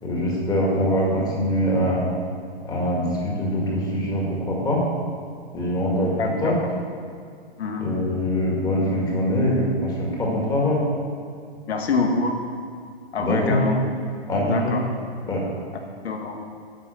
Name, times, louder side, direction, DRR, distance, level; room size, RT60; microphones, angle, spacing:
voice 1, 0.0-2.0 2.6-4.8 5.5-6.5 7.8-10.8 13.2-13.6 14.3-14.8 15.3-15.4, equal, 10° left, -3 dB, 1.9 m, -23 dB
voice 2, 6.2-6.5 7.6-7.9 11.7-12.4 13.1-13.8 14.5-14.8 16.0-16.4, left 4 dB, 75° left, 3 dB, 1.5 m, -25 dB
10.5 x 5.5 x 7.5 m, 2.2 s
hypercardioid pair, 150°, 32 cm